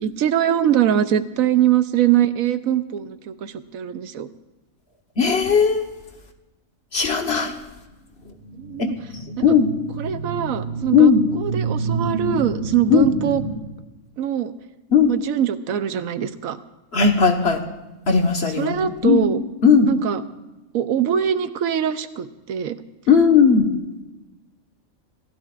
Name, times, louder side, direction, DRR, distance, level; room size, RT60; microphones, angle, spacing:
voice 1, 0.0-4.3 8.6-9.0 9.4-9.6 10.0-13.4 14.2-14.5 15.1-16.6 18.4-19.4 19.8-20.2 20.7-22.8, right 10 dB, 80° right, 12 dB, 1.1 m, -22 dB
voice 2, 5.2-5.8 6.9-7.5 9.4-9.7 10.9-11.2 12.9-13.1 14.9-15.1 16.9-17.6 18.1-18.7 19.0-19.2 19.6-19.9 23.1-23.7, left 6 dB, 50° left, 4 dB, 1.5 m, -16 dB
sound 1, 8.3-13.6, right 3 dB, 40° right, 4.6 m, -29 dB
28.0 x 15.0 x 2.5 m, 1.1 s
omnidirectional pair, 1.4 m